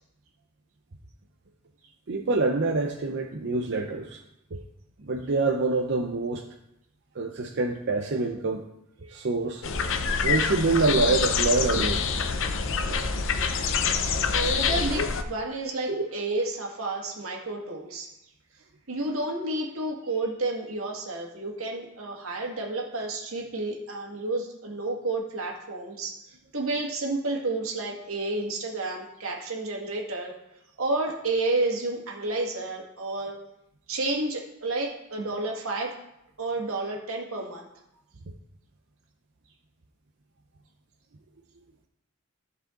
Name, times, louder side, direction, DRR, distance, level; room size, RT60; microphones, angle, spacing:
voice 1, 2.1-4.2 4.5-4.6 5.0-6.4 7.2-8.6 9.1-9.6 10.2-12.0 12.9-13.0 15.9-16.0, right 3 dB, 55° right, 1 dB, 0.7 m, -26 dB
sound 1, 9.6-15.2, left 5 dB, 65° left, 0.7 m, -26 dB
voice 2, 14.3-18.1 18.9-26.2 26.5-30.3 30.8-33.4 33.9-35.9 36.4-37.7, right 2 dB, 90° right, 0 dB, 1.9 m, -30 dB
14.5 x 4.8 x 3.8 m, 0.83 s
head